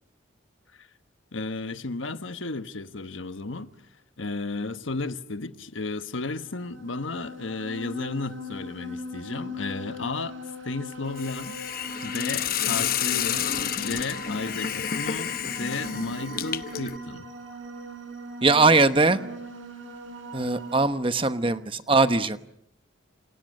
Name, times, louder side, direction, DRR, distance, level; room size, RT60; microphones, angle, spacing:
voice 1, 1.3-3.7 4.2-10.4 10.6-11.6 12.0-17.3, left 3 dB, 85° left, 1.3 m, -33 dB
sound 1, 6.3-20.8, equal, 85° right, 7.0 m, -40 dB
Hiss, 11.2-17.0, left 9 dB, 50° left, 0.9 m, -30 dB
voice 2, 18.4-19.2 20.3-22.4, right 3 dB, 25° right, 1.0 m, -21 dB
28.5 x 27.5 x 6.5 m
head